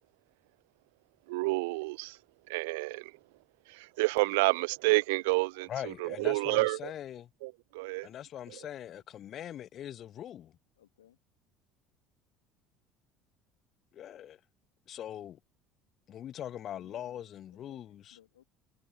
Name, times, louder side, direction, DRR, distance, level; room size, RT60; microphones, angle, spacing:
voice 1, 1.3-2.2 2.5-3.2 3.7-6.9 7.4-8.1, right 24 dB, 65° right, 0.3 m, -29 dB
voice 2, 5.7-7.3 8.0-10.6 13.9-14.4 14.9-15.4 16.1-18.2, left 11 dB, 45° left, 0.5 m, -42 dB
voice 3, 10.7-11.2 16.5-18.4, left 12 dB, 75° left, 2.2 m, -61 dB
figure-of-eight pair, 60°, 0 cm